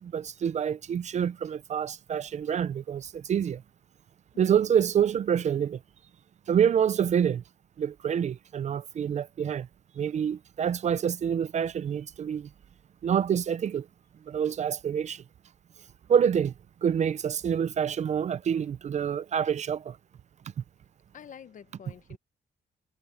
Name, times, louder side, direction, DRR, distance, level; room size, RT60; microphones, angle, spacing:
voice 1, 0.0-3.6 4.4-5.8 6.5-7.4 7.8-9.7 10.0-12.5 13.0-13.9 14.3-15.2 16.1-16.5 16.8-20.0, right 8 dB, 45° right, 0.5 m, -27 dB
voice 2, 21.1-22.2, left 8 dB, 50° left, 0.9 m, -48 dB
wide cardioid pair, 170°, 17 cm